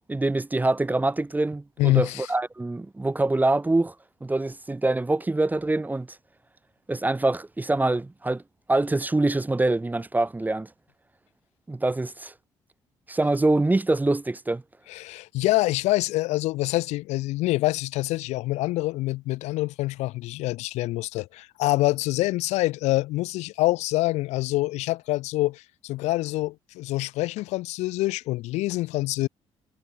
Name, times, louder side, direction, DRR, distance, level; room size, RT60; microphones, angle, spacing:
voice 1, 0.1-3.9 4.2-6.1 6.9-8.4 8.7-10.7 11.7-12.3 13.1-14.6, right 2 dB, 15° right, 0.8 m, -24 dB
voice 2, 1.8-2.3 14.9-29.3, left 18 dB, 85° left, 1.9 m, -26 dB
supercardioid pair, 65°, 11 cm